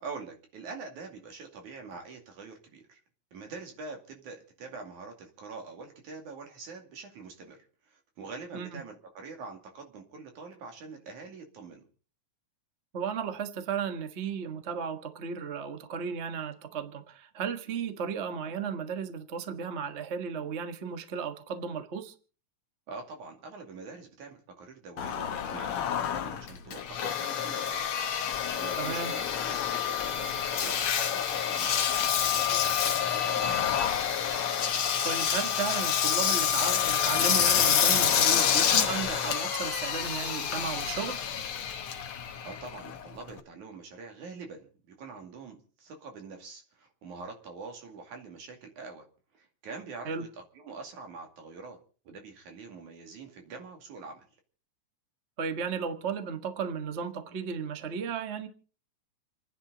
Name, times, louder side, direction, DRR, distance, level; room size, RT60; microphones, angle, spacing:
voice 1, 0.0-3.0 3.3-11.8 22.9-27.9 28.2-29.3 29.7-33.8 42.5-49.0 49.3-50.3 50.6-51.8 52.1-54.2, right 4 dB, 75° right, 3.9 m, -45 dB
voice 2, 12.9-22.1 28.8-29.1 35.0-41.2 50.0-50.2 55.4-58.5, right 6 dB, 40° right, 0.9 m, -35 dB
Engine, 25.0-43.4, left 8 dB, 60° left, 1.6 m, -28 dB
29.0 x 10.0 x 4.0 m
omnidirectional pair, 3.5 m